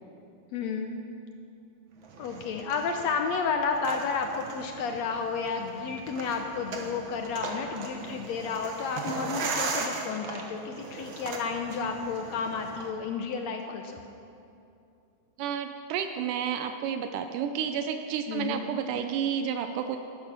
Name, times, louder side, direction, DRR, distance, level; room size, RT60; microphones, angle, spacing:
voice 1, 0.5-1.0 2.2-14.0 18.3-18.6, left 5 dB, 75° left, 5 dB, 1.7 m, -31 dB
sound 1, 2.0-12.9, right 3 dB, 60° right, 1.4 m, -38 dB
voice 2, 15.4-20.0, right 8 dB, 85° right, 7 dB, 2.2 m, -31 dB
14.0 x 11.5 x 5.9 m, 2.7 s
omnidirectional pair, 3.7 m